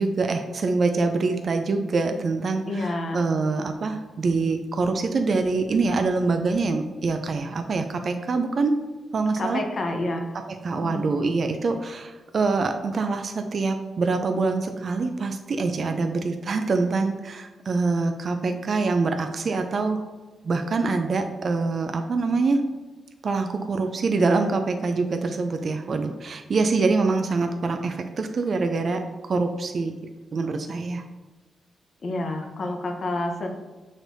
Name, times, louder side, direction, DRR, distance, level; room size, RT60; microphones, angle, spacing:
voice 1, 0.0-8.8 9.1-9.6 10.5-20.0 20.4-22.7 23.2-29.0 29.3-30.0 30.3-31.0, right 3 dB, 50° right, 6 dB, 0.3 m, -25 dB
voice 2, 2.7-3.2 9.4-10.2 10.7-11.1 32.0-33.5, left 2 dB, 50° left, 3 dB, 0.7 m, -29 dB
6.3 x 3.2 x 2.6 m, 1.3 s
cardioid pair, 100°, 0 cm